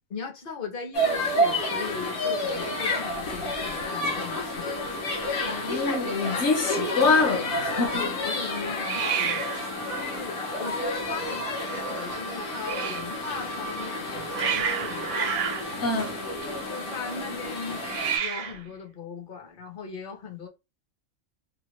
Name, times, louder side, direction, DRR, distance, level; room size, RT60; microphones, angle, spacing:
voice 1, 0.1-4.7 8.0-15.2 16.7-20.5, left 5 dB, 50° left, 0.8 m, -39 dB
sound 1, 0.9-18.2, left 1 dB, 80° left, 1.4 m, -30 dB
Hiss, 2.5-3.9 4.1-4.6 4.9-5.0 5.1-5.8 8.8-13.1 13.9-16.8 17.8-18.7, right 7 dB, 70° right, 0.9 m, -33 dB
voice 2, 5.4-8.1 15.8-16.2, left 4 dB, 65° left, 1.1 m, -25 dB
3.0 x 2.2 x 3.0 m
omnidirectional pair, 1.4 m